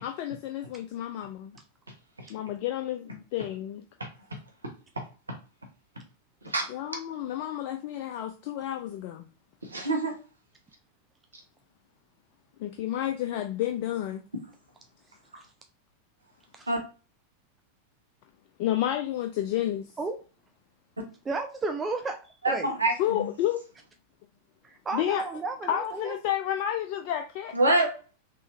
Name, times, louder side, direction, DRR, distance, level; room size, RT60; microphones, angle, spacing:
voice 1, 0.0-1.6 2.3-3.8 6.7-9.3 12.6-14.2 18.6-19.9 23.0-23.6 24.9-25.2 25.7-27.5, left 12 dB, 45° left, 0.4 m, -30 dB
voice 2, 9.6-10.1 16.7-16.8 22.4-23.3 27.5-27.9, right 2 dB, 80° right, 1.2 m, -26 dB
voice 3, 21.3-22.2 22.5-22.7 24.6-26.2, right 3 dB, 15° right, 0.4 m, -33 dB
3.7 x 2.9 x 2.6 m
figure-of-eight pair, 90°, 0 cm